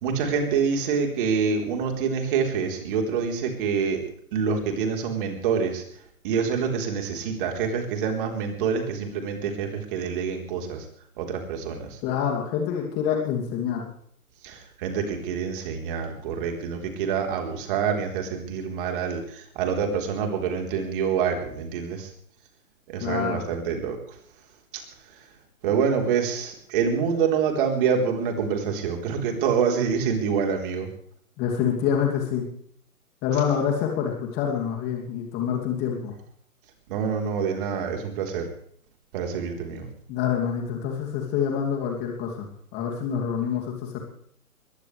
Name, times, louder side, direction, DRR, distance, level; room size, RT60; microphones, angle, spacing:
voice 1, 0.0-4.0 4.3-5.8 6.2-10.8 11.2-12.0 14.4-22.1 22.9-24.0 25.6-30.9 36.9-38.5 39.1-39.9, right 6 dB, 35° right, 3 dB, 4.1 m, -26 dB
voice 2, 12.0-13.8 23.0-23.4 31.4-32.5 33.2-36.1 40.1-42.5 42.7-44.0, left 8 dB, 20° left, 1 dB, 2.8 m, -26 dB
22.0 x 17.5 x 3.4 m, 0.63 s
figure-of-eight pair, 135°, 44 cm